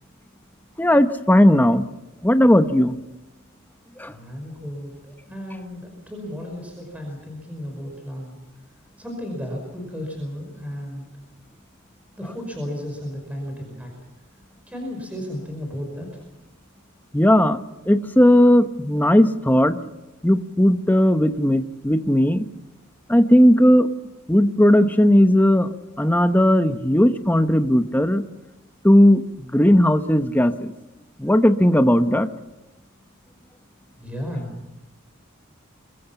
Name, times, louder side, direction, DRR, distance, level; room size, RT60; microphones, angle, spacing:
voice 1, 0.8-1.9 2.2-3.0 4.0-4.1 17.1-17.6 17.9-19.8 20.2-22.5 23.1-23.9 24.3-25.7 26.0-28.2 28.8-29.2 29.5-30.7 31.2-32.3, equal, 10° left, 9 dB, 0.9 m, -16 dB
voice 2, 4.1-8.4 9.0-11.1 12.2-13.9 14.7-16.2 34.0-34.5, equal, 5° right, 1 dB, 5.3 m, -34 dB
26.0 x 22.0 x 5.9 m, 1.0 s
head